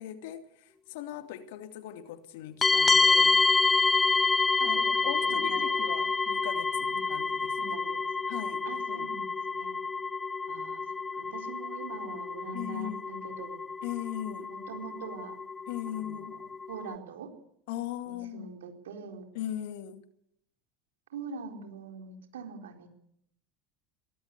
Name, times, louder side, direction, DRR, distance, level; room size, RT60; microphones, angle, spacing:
voice 1, 0.0-3.4 4.6-7.7 8.3-9.1 12.5-13.1 13.8-14.5 15.7-16.4 17.7-18.5 19.3-20.0, left 11 dB, 70° left, 2.4 m, -39 dB
sound 1, 2.6-16.9, left 4 dB, 20° left, 0.8 m, -28 dB
voice 2, 4.6-5.9 6.9-7.0 7.6-8.0 8.7-9.8 10.5-10.8 11.2-13.6 14.5-15.3 15.9-16.3 16.7-17.3 18.1-19.2 21.1-22.9, right 5 dB, 75° right, 4.2 m, -43 dB
23.5 x 18.0 x 8.3 m
hypercardioid pair, 75°, 0 cm